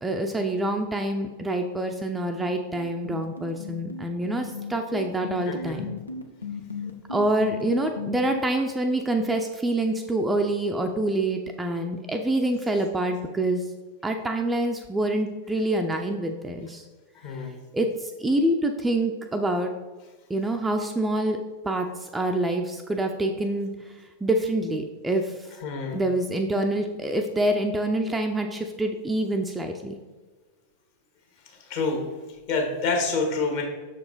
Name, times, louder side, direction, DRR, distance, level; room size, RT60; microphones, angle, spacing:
voice 1, 0.0-5.9 7.1-13.6 14.0-16.8 17.7-19.7 20.3-21.4 21.6-23.7 24.2-25.3 25.9-30.0, right 1 dB, 10° right, 4 dB, 0.5 m, -26 dB
sound 1, 2.1-8.4, left 4 dB, 85° left, 0.7 m, -35 dB
voice 2, 5.5-5.8 17.1-17.5 25.6-26.0 31.6-32.0 32.5-33.6, left 4 dB, 50° left, 2 dB, 1.6 m, -27 dB
6.7 x 4.8 x 4.0 m, 1.3 s
figure-of-eight pair, 90°, 0 cm